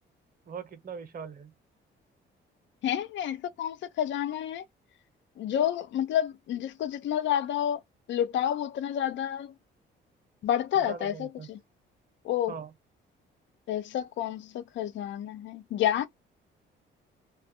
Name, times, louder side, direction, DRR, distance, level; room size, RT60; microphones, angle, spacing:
voice 1, 0.5-1.5 10.7-11.5 12.5-12.7, right 6 dB, 45° right, 0.8 m, -41 dB
voice 2, 2.8-4.6 5.4-7.8 8.1-9.5 10.4-11.6 12.2-12.5 13.7-16.1, left 10 dB, 70° left, 0.5 m, -29 dB
2.3 x 2.1 x 2.7 m
cardioid pair, 90°, 20 cm